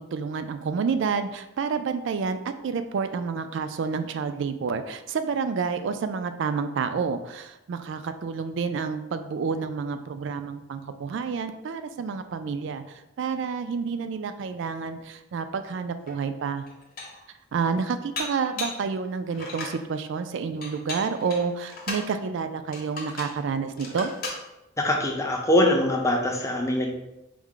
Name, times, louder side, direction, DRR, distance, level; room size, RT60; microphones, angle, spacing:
voice 1, 0.0-2.4 2.6-16.7 17.5-24.1, right 5 dB, 60° right, 10 dB, 0.3 m, -29 dB
Dishes pots and pans, 16.1-16.2 16.7-17.3 18.2-18.9 19.3-19.8 20.6-22.1 22.7-23.4 23.8-24.4, left 2 dB, 50° left, 0.8 m, -36 dB
voice 2, 24.8-26.9, left 1 dB, 15° left, 0 dB, 0.5 m, -23 dB
4.6 x 2.1 x 3.7 m, 0.93 s
head